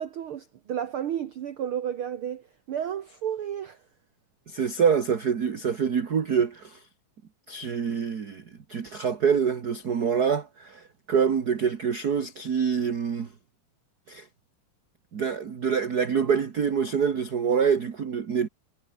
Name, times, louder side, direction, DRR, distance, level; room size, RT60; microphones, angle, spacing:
voice 1, 0.0-3.8, right 9 dB, 75° right, 1.2 m, -32 dB
voice 2, 4.5-6.8 7.5-8.4 8.7-13.3 14.1-14.3 15.1-18.5, right 6 dB, 40° right, 1.4 m, -26 dB
omnidirectional pair, 3.8 m